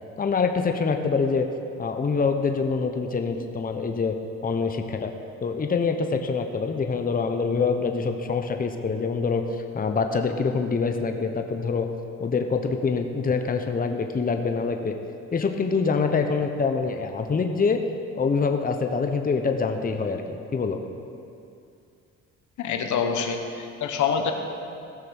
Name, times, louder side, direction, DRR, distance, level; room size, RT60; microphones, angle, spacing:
voice 1, 0.2-1.5 1.8-4.2 4.4-5.1 5.4-9.4 9.7-11.9 12.2-15.0 15.3-17.8 18.1-20.8, left 5 dB, 30° left, 5 dB, 0.9 m, -25 dB
voice 2, 22.6-24.3, left 6 dB, 75° left, 5 dB, 1.2 m, -26 dB
16.0 x 6.5 x 6.4 m, 2.6 s
cardioid pair, 90°, 30 cm